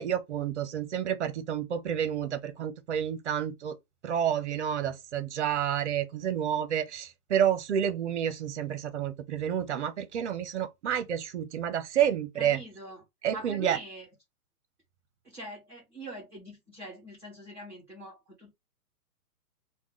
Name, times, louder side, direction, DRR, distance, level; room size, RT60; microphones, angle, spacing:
voice 1, 0.0-3.8 4.0-12.6 13.2-13.8, right 9 dB, 45° right, 0.8 m, -29 dB
voice 2, 12.4-14.1 15.2-18.5, right 1 dB, 5° right, 0.7 m, -44 dB
3.2 x 2.3 x 3.7 m
hypercardioid pair, 160°, 48 cm